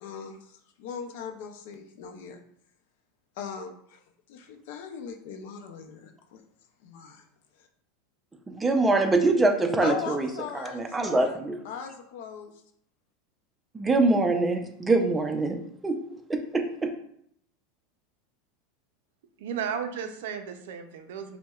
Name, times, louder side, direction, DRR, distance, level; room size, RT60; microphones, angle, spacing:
voice 1, 0.0-2.4 3.4-4.0 4.3-6.4 6.8-7.2 9.8-11.4 11.6-12.5, left 7 dB, 70° left, 4 dB, 0.5 m, -39 dB
voice 2, 8.5-10.3 10.5-11.6 13.7-15.6 15.8-16.0 16.3-16.9, right 2 dB, 15° right, 4 dB, 0.4 m, -24 dB
voice 3, 19.4-21.4, right 7 dB, 75° right, 7 dB, 0.4 m, -34 dB
5.4 x 2.1 x 2.3 m, 0.68 s
supercardioid pair, 135°, 0 cm